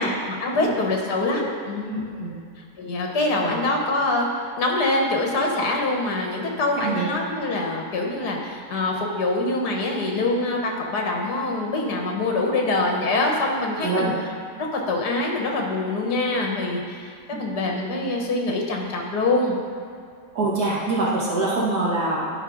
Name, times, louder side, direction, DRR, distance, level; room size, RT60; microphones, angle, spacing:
voice 1, 0.0-1.9 2.8-4.3 4.6-14.1 14.7-19.6, left 2 dB, 70° left, 1 dB, 1.8 m, -24 dB
voice 2, 1.9-2.4 3.4-3.6 6.8-7.1 13.8-14.1 17.3-17.6 20.3-22.3, right 2 dB, 60° right, -7 dB, 2.3 m, -25 dB
11.0 x 4.8 x 4.9 m, 2.3 s
omnidirectional pair, 1.8 m